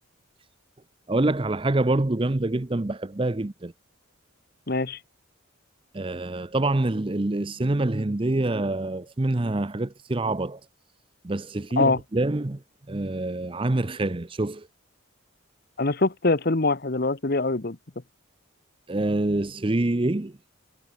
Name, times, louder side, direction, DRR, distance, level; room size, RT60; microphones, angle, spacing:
voice 1, 1.1-3.7 5.9-10.6 11.2-12.6 12.9-14.7 18.9-20.4, right 2 dB, 25° right, 0.6 m, -26 dB
voice 2, 4.7-5.0 11.8-12.0 15.8-17.8, left 3 dB, 45° left, 1.0 m, -23 dB
head